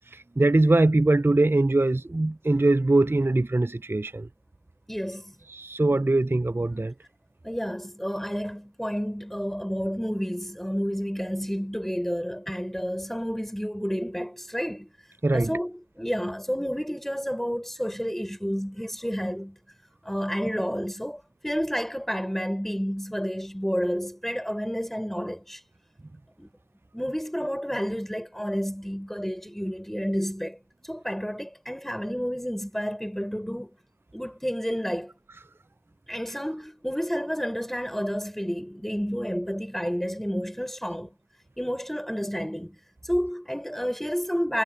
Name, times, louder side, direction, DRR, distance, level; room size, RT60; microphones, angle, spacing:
voice 1, 0.1-4.3 5.5-6.9 15.2-15.5, right 2 dB, 25° right, 0.4 m, -22 dB
voice 2, 4.9-5.3 7.4-14.9 15.3-19.6 20.0-25.6 26.4-26.5 26.9-30.6 30.8-33.7 34.1-35.1 36.1-41.1 41.6-44.6, equal, 5° left, 5.7 m, -30 dB
wide cardioid pair, 40°, 9 cm